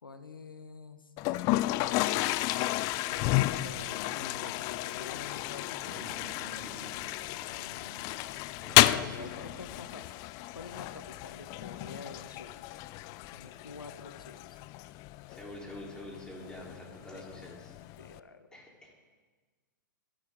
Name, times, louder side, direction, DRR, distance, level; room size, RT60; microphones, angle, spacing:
voice 1, 0.0-1.1 3.0-6.3 7.5-8.2 8.7-10.2 10.5-12.5 13.3-14.6 17.1-17.5 18.0-18.6, left 4 dB, 90° left, 10 dB, 1.2 m, -47 dB
Toilet flush, 1.2-18.2, left 17 dB, 35° left, 0.3 m, -32 dB
voice 2, 4.0-4.4 5.8-7.0 8.6-9.4 15.3-17.7 18.5-18.9, left 1 dB, 5° left, -3 dB, 3.6 m, -47 dB
20.5 x 11.0 x 3.8 m, 1.4 s
hypercardioid pair, 115°, 11 cm